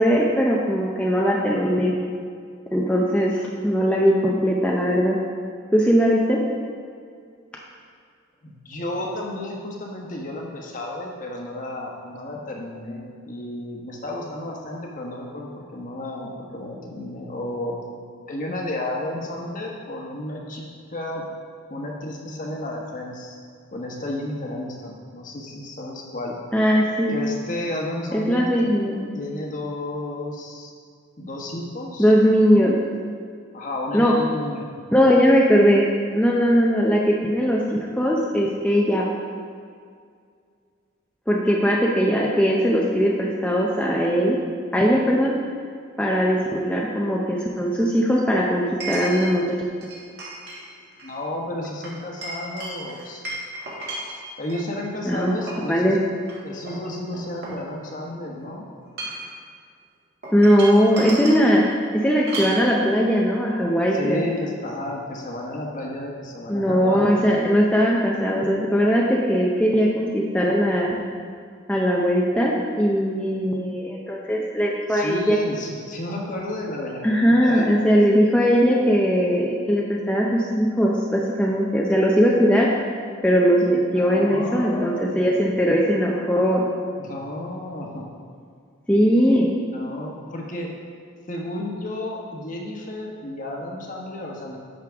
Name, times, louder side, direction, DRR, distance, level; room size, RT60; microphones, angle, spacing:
voice 1, 0.0-1.9 2.7-5.2 5.7-6.4 26.5-27.1 28.1-29.2 32.0-32.7 33.9-34.1 34.9-35.8 36.1-39.1 41.3-44.4 44.7-45.3 46.0-49.4 55.1-55.3 55.7-56.0 60.3-64.2 66.5-71.0 71.7-75.4 77.0-82.7 83.2-86.6 88.9-89.5, equal, 5° left, -3 dB, 0.6 m, -19 dB
voice 2, 8.4-17.8 18.3-21.2 21.7-23.4 23.7-26.3 27.1-28.7 29.1-30.7 31.2-32.1 33.5-34.7 51.0-53.2 54.4-55.9 56.4-58.7 63.9-67.2 74.9-77.7 83.9-85.3 87.0-88.1 89.7-90.7 91.3-94.6, left 1 dB, 40° left, -1 dB, 1.2 m, -32 dB
Chink clink, 45.3-45.4 48.8-49.3 49.8-50.6 50.9-51.2 51.8-54.6 55.2-55.7 56.2-56.3 56.7-58.1 58.8-59.3 60.2-61.4 62.3-62.6, right 2 dB, 55° right, 2.3 m, -34 dB
10.5 x 6.6 x 3.5 m, 2.2 s
head